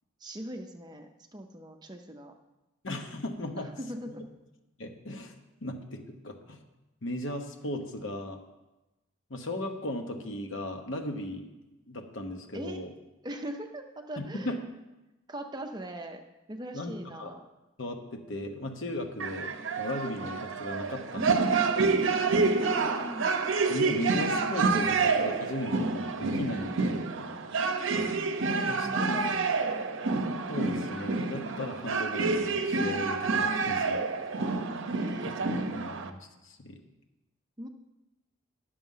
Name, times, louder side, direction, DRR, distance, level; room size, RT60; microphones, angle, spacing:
voice 1, 0.2-2.3 3.6-4.2 12.5-12.8 13.2-14.6 15.3-16.2 16.5-17.4 22.6-23.4 28.4-29.8 34.9-35.7 37.6-37.7, right 1 dB, 20° right, 5 dB, 0.6 m, -41 dB
voice 2, 2.8-3.7 4.8-5.3 5.6-6.6 7.0-8.4 9.3-11.5 11.9-12.9 14.2-14.6 16.7-17.3 17.8-21.6 23.7-27.0 28.7-28.9 30.5-33.3 33.7-34.0 34.4-34.5 35.3-36.2 36.4-36.8, left 1 dB, 60° left, 4 dB, 1.1 m, -36 dB
sound 1, 19.2-36.1, right 4 dB, 65° right, 0.7 m, -28 dB
10.5 x 6.8 x 5.6 m, 1.0 s
head